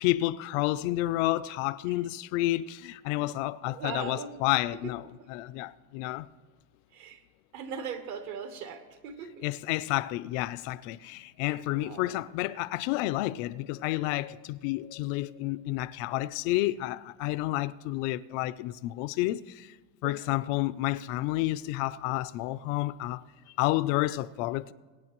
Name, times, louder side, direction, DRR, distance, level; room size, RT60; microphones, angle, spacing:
voice 1, 0.0-6.3 9.4-19.7 20.0-23.2 23.6-24.7, left 17 dB, 65° left, 0.5 m, -30 dB
voice 2, 3.7-4.3 4.8-4.9 5.2-5.3 6.9-7.2 7.5-9.5 11.7-12.2 20.0-20.2, right 6 dB, 45° right, 1.1 m, -39 dB
23.0 x 8.9 x 3.0 m
cardioid pair, 175°, 42 cm